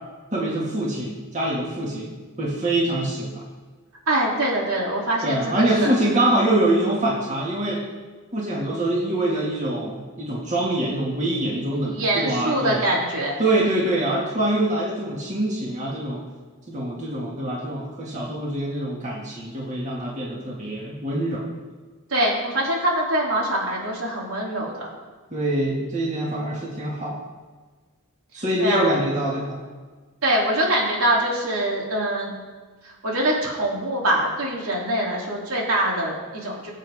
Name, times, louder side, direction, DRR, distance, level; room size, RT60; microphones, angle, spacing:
voice 1, 0.3-2.1 2.4-3.4 5.2-7.8 8.3-12.8 13.4-16.2 16.7-21.4 25.3-27.2 28.3-29.6, right 1 dB, 35° right, -4 dB, 2.1 m, -24 dB
voice 2, 4.1-5.9 11.9-13.8 22.1-24.9 28.6-28.9 30.2-32.3 32.8-36.7, right 1 dB, 80° right, -3 dB, 3.2 m, -24 dB
21.5 x 8.1 x 3.7 m, 1.4 s
head